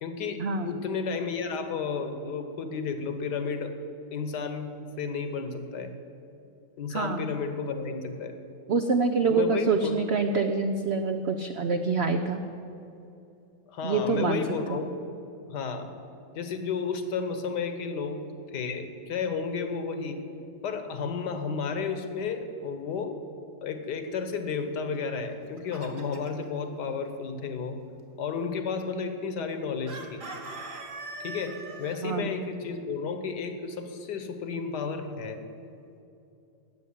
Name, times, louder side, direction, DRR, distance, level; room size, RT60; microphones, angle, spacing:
voice 1, 0.0-3.7 4.1-5.9 6.8-8.3 9.3-10.0 13.7-14.9 15.5-15.9 16.3-18.2 18.5-20.2 20.6-23.2 23.6-27.8 28.2-30.2 31.2-35.4, left 5 dB, 65° left, 8 dB, 1.7 m, -32 dB
voice 2, 6.9-7.3 8.7-12.4 13.8-14.4 14.7-14.8 32.0-32.3, right 4 dB, 65° right, 6 dB, 0.6 m, -26 dB
Chicken rooster, 25.2-26.5 29.9-32.0, right 2 dB, 45° right, 2.0 m, -41 dB
17.0 x 6.9 x 9.8 m, 2.7 s
omnidirectional pair, 2.0 m